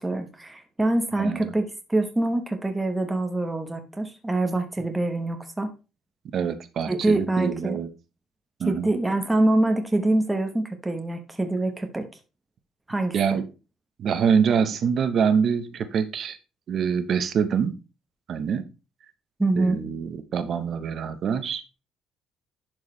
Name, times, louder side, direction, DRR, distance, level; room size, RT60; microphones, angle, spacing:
voice 1, 0.0-5.7 6.9-7.8 8.7-12.1 12.9-13.2 19.4-19.8, right 2 dB, 10° right, 6 dB, 1.0 m, -25 dB
voice 2, 1.2-1.5 6.3-7.9 8.6-8.9 13.1-13.5 14.0-16.4 16.7-17.7 18.3-18.6 19.5-21.6, right 7 dB, 50° right, 11 dB, 0.9 m, -25 dB
11.0 x 4.8 x 3.2 m, 0.29 s
cardioid pair, 140°, 0 cm